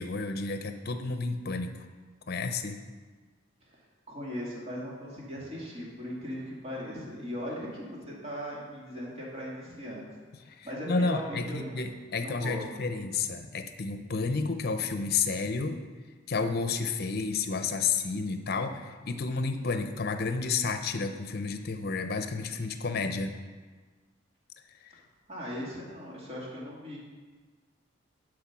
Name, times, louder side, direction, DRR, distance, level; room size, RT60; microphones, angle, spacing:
voice 1, 0.0-1.7 2.3-2.8 10.6-15.8 16.3-23.3, left 4 dB, 55° left, 8 dB, 0.7 m, -31 dB
voice 2, 4.1-10.0 10.6-11.9 12.2-12.6 25.3-27.0, equal, 35° right, -5 dB, 2.3 m, -38 dB
11.0 x 5.0 x 6.1 m, 1.4 s
head